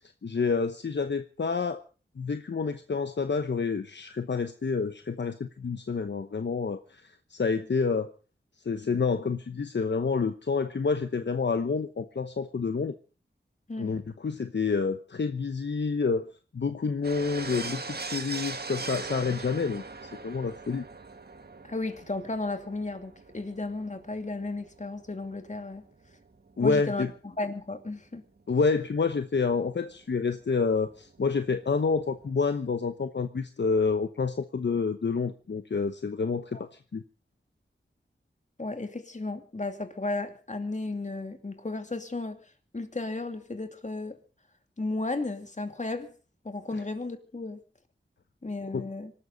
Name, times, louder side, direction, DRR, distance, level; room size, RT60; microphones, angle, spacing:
voice 1, 0.2-1.8 2.2-7.0 7.3-8.1 8.6-12.9 13.8-20.8 26.6-27.1 28.5-37.0 46.7-46.8 48.7-48.8, left 4 dB, 70° left, 1.0 m, -28 dB
sound 1, 17.0-26.8 27.0-27.1 27.3-27.4 30.0-30.1 30.2-30.3 30.5-32.3, right 3 dB, 55° right, 1.7 m, -41 dB
voice 2, 21.6-25.8 26.6-28.2 36.5-36.6 38.6-42.4 42.7-44.2 44.8-46.1 46.4-47.6 48.4-49.1, left 2 dB, 40° left, 2.6 m, -34 dB
25.5 x 12.5 x 4.0 m
wide cardioid pair, 70°, 19 cm